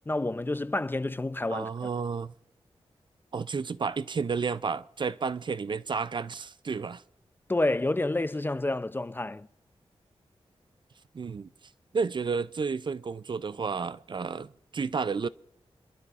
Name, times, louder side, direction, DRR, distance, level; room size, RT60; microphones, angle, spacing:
voice 1, 0.1-1.7 7.5-9.5, left 2 dB, 20° left, 0.4 m, -29 dB
voice 2, 1.5-2.3 3.3-7.0 11.1-11.5 11.9-15.3, right 5 dB, 45° right, 0.4 m, -31 dB
29.0 x 12.5 x 2.5 m
wide cardioid pair, 75°, 11 cm